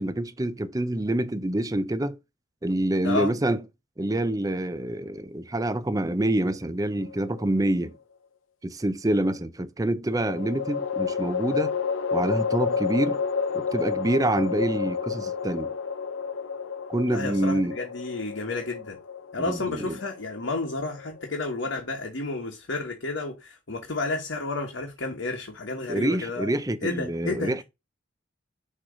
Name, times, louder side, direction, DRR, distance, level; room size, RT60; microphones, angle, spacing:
voice 1, 0.0-2.2 2.6-3.6 4.0-8.0 8.6-11.8 12.1-13.2 13.5-15.7 16.9-17.8 19.4-20.0 25.9-27.6, right 1 dB, 20° right, 0.5 m, -26 dB
sound 1, 7.0-7.8 10.1-21.4, left 6 dB, 90° left, 0.6 m, -30 dB
voice 2, 17.1-19.0 19.3-26.5 26.8-27.5, left 3 dB, 70° left, 1.1 m, -31 dB
6.6 x 3.0 x 4.8 m
head